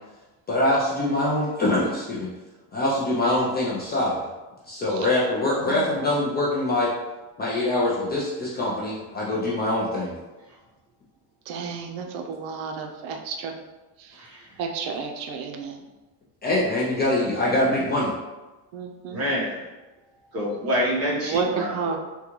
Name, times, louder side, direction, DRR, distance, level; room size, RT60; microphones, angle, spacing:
voice 1, 0.5-2.3 2.7-4.2 4.7-6.9 7.4-10.1 16.4-18.1, left 1 dB, 25° left, -6 dB, 0.3 m, -24 dB
voice 2, 5.5-6.0 11.5-13.5 14.0-14.3 14.6-15.9 18.7-19.2 21.1-22.0, right 5 dB, 85° right, 3 dB, 0.6 m, -31 dB
voice 3, 14.2-14.6 19.1-19.7 20.3-22.0, equal, 35° right, -6 dB, 1.0 m, -27 dB
3.7 x 2.3 x 2.9 m, 1.1 s
cardioid pair, 160°, 44 cm